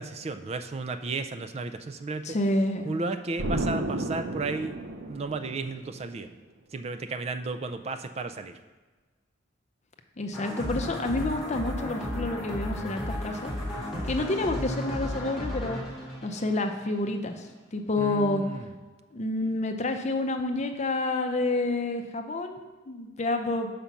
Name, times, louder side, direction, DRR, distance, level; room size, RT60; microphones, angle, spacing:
voice 1, 0.0-2.4 2.8-4.8 5.1-6.3 6.7-8.5 13.8-14.1 18.0-18.7, right 3 dB, 35° right, 9 dB, 0.4 m, -34 dB
voice 2, 2.2-2.9 10.2-13.5 14.1-15.8 16.2-17.5 17.7-18.4 19.1-23.7, left 2 dB, 35° left, 6 dB, 0.6 m, -29 dB
Explosion, 3.4-6.1, right 2 dB, 90° right, 0.6 m, -32 dB
sound 1, 10.3-17.1, left 1 dB, ahead, 1.6 m, -34 dB
5.6 x 5.1 x 5.9 m, 1.3 s
head